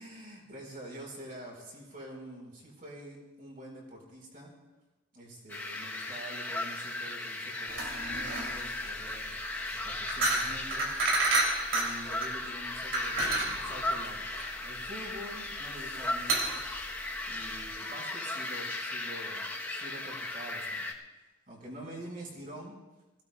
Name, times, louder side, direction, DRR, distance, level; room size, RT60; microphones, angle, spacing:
voice 1, 0.0-4.5 5.1-10.9 11.7-16.6 17.3-20.8 21.5-22.7, right 1 dB, 45° right, -2 dB, 5.0 m, -46 dB
sound 1, 5.5-20.9, left 2 dB, 10° left, 1.0 m, -37 dB
sound 2, 7.7-17.7, right 2 dB, 85° right, 3.2 m, -31 dB
23.0 x 17.0 x 2.4 m, 1.1 s
head